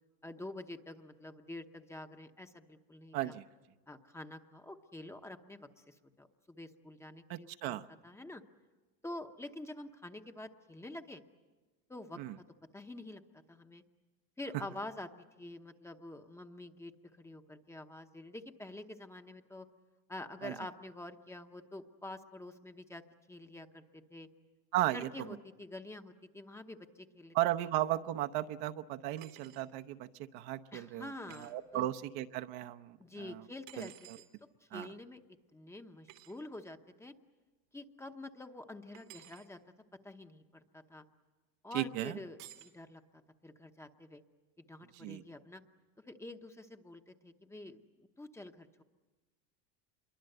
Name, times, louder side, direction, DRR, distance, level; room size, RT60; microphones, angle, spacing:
voice 1, 0.2-3.3 3.9-7.8 8.0-8.4 9.0-11.2 11.9-12.2 12.7-13.8 14.4-15.1 15.4-16.9 17.2-19.7 20.1-23.0 23.3-24.3 24.9-27.4 30.7-31.9 33.0-33.9 34.7-35.2 35.5-37.1 37.7-39.6 40.0-41.0 41.6-44.2 44.6-45.6 46.1-48.8, left 1 dB, 5° left, 6 dB, 0.8 m, -47 dB
voice 2, 3.1-3.4 7.3-7.9 12.2-12.4 20.4-20.5 24.7-25.1 27.3-33.4 33.8-34.2 34.7-34.9 41.7-42.2 44.9-45.2, right 14 dB, 60° right, 8 dB, 0.9 m, -36 dB
sound 1, 29.2-29.7 31.3-31.5 33.7-34.3 36.1-36.3 38.9-39.5 42.4-42.8, right 14 dB, 85° right, 2.6 m, -54 dB
26.5 x 23.0 x 7.8 m, 1.2 s
supercardioid pair, 145°, 39 cm